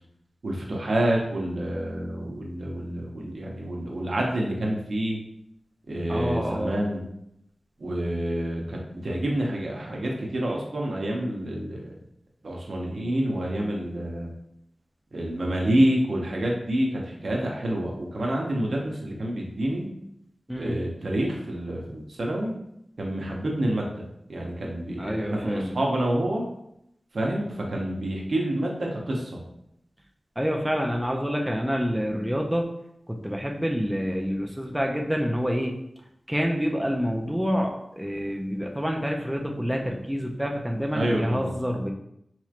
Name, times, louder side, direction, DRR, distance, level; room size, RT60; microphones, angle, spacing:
voice 1, 0.4-5.2 5.9-7.0 7.8-11.9 12.4-14.3 15.1-19.9 20.6-22.5 23.0-24.0 24.3-26.5 27.1-29.4 40.9-41.5, right 1 dB, 70° right, -1 dB, 0.8 m, -28 dB
voice 2, 6.1-6.8 20.5-20.8 25.0-25.8 30.4-32.6 33.1-35.7 36.3-41.9, equal, 5° right, 1 dB, 0.4 m, -27 dB
4.2 x 3.0 x 2.4 m, 0.78 s
wide cardioid pair, 90°, 0 cm